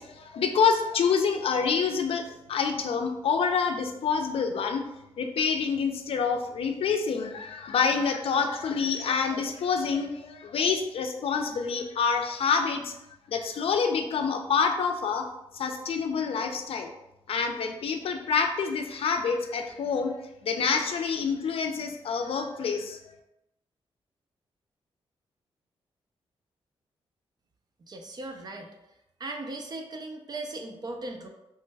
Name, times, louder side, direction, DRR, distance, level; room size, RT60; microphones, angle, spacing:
voice 1, 0.0-4.8 5.2-12.9 13.3-15.2 15.5-16.9 17.3-20.1 20.4-23.0, left 5 dB, 65° left, 5 dB, 0.4 m, -27 dB
voice 2, 27.8-28.8 29.2-31.3, right 2 dB, 40° right, 3 dB, 0.5 m, -38 dB
3.1 x 2.2 x 3.3 m, 0.90 s
cardioid pair, 100°, 10 cm